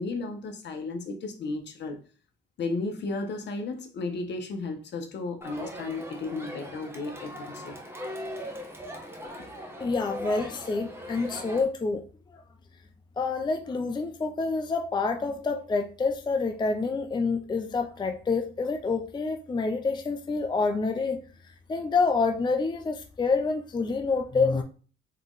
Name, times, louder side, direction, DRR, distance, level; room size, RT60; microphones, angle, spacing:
voice 1, 0.0-2.0 2.6-7.8, left 3 dB, 60° left, 1.1 m, -34 dB
Crowd, 5.4-11.6, equal, 10° right, 1.1 m, -39 dB
voice 2, 9.8-12.0 12.3-12.4 13.2-24.6, left 4 dB, 20° left, 0.5 m, -27 dB
4.4 x 3.1 x 3.9 m
cardioid pair, 90°, 20 cm